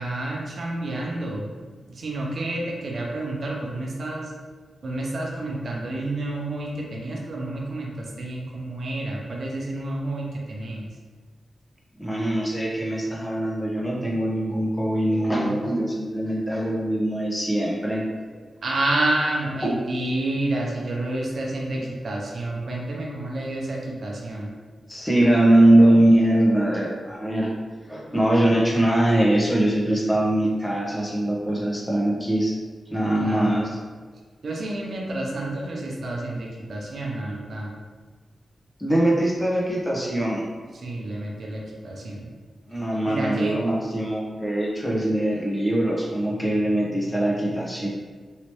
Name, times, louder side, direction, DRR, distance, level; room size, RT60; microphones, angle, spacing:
voice 1, 0.0-1.5 1.9-4.3 4.8-10.9 18.6-24.5 33.2-33.6 34.4-37.8 40.8-42.3 43.1-43.7, right 2 dB, 65° right, -2 dB, 0.6 m, -29 dB
voice 2, 12.0-18.1 19.6-19.8 24.9-27.5 27.9-32.6 32.9-33.8 38.8-40.5 42.7-47.9, right 1 dB, 10° left, -3 dB, 1.0 m, -22 dB
3.2 x 2.9 x 3.0 m, 1.5 s
cardioid pair, 55°, 0 cm